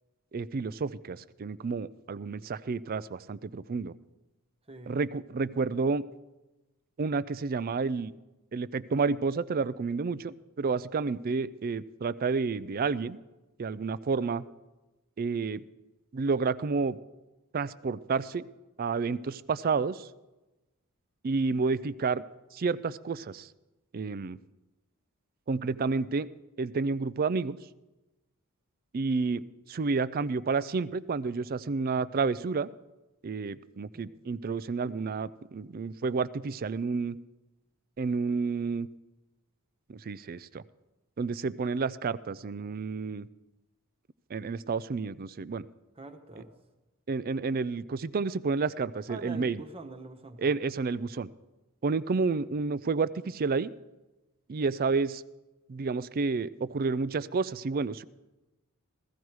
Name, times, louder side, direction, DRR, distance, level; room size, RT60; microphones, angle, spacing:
voice 1, 0.3-3.9 4.9-6.0 7.0-8.1 8.5-13.2 13.6-14.4 15.2-15.6 16.1-17.0 17.5-18.4 18.8-20.1 21.2-22.2 22.5-23.5 23.9-24.4 25.5-26.3 26.6-27.6 28.9-32.7 33.2-37.2 38.0-38.9 39.9-40.6 41.2-43.3 44.3-45.7 47.1-49.6 50.4-51.3 51.8-53.7 54.5-55.2 55.7-58.0, right 4 dB, 40° right, 17 dB, 0.4 m, -30 dB
voice 2, 4.7-5.0 33.9-34.0 45.9-46.5 49.1-50.5, right 3 dB, 25° right, 6 dB, 1.2 m, -44 dB
15.5 x 15.0 x 4.7 m, 1.1 s
head